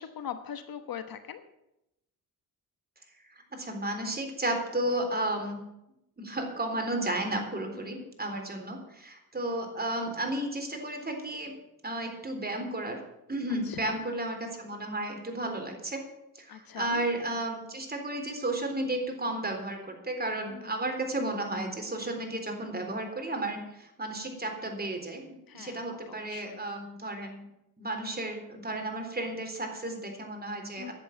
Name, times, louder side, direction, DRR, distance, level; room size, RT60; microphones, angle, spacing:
voice 1, 0.0-1.4 7.7-8.1 13.6-14.0 16.5-17.1 20.5-20.8 25.5-26.7 30.8-30.9, left 8 dB, 70° left, 9 dB, 1.2 m, -42 dB
voice 2, 3.5-5.6 6.2-11.5 11.8-13.0 13.3-16.0 16.4-27.4 27.8-30.9, right 1 dB, 25° right, 3 dB, 3.7 m, -33 dB
11.0 x 7.8 x 9.1 m, 0.87 s
cardioid pair, 75°, 37 cm